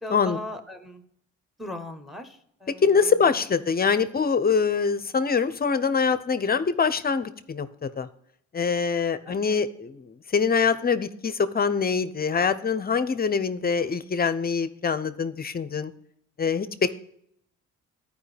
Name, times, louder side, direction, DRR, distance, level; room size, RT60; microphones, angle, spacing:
voice 1, 0.0-1.0 1.6-3.3 9.2-9.6, left 1 dB, ahead, 8 dB, 1.1 m, -39 dB
voice 2, 2.8-8.1 8.5-15.9 16.4-16.9, left 5 dB, 30° left, 13 dB, 0.6 m, -24 dB
12.5 x 5.0 x 3.3 m, 0.72 s
cardioid pair, 90°, 30 cm